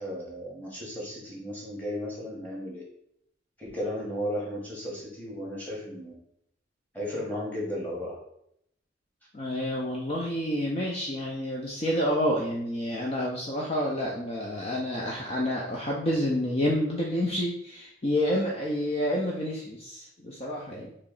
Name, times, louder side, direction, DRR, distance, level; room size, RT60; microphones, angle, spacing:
voice 1, 0.0-2.8 3.6-6.1 6.9-8.2, equal, 10° left, -5 dB, 1.1 m, -34 dB
voice 2, 9.3-20.9, equal, 30° left, -3 dB, 0.5 m, -29 dB
3.1 x 2.8 x 3.8 m, 0.74 s
head